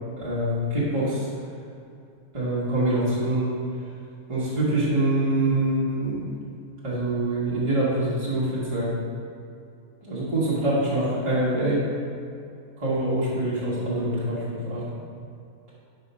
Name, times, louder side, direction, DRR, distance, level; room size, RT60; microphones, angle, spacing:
voice 1, 0.2-1.3 2.3-3.5 4.3-6.3 6.8-8.9 10.1-11.8 12.8-14.8, right 1 dB, 20° right, -10 dB, 1.5 m, -25 dB
4.9 x 4.9 x 5.5 m, 2.4 s
omnidirectional pair, 1.6 m